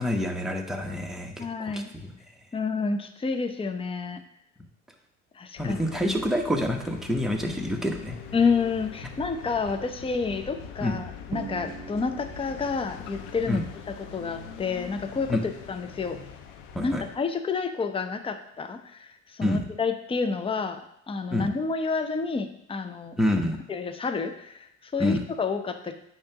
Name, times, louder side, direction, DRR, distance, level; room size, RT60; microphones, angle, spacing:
voice 1, 0.0-2.1 5.6-8.2 10.8-11.0 13.5-13.6 15.3-15.4 16.7-17.0 19.4-19.6 21.3-21.5 23.2-23.6 25.0-25.2, left 1 dB, ahead, 2 dB, 1.1 m, -27 dB
voice 2, 1.4-1.9 2.5-4.2 5.3-5.8 8.3-16.2 16.8-20.8 21.1-23.2 23.7-25.9, left 4 dB, 15° left, 7 dB, 0.6 m, -29 dB
sound 1, 5.6-17.2, left 7 dB, 75° left, 0.8 m, -43 dB
Drum, 11.3-13.0, right 8 dB, 35° right, 0.5 m, -41 dB
8.6 x 3.0 x 5.7 m, 0.76 s
hypercardioid pair, 70°, 36 cm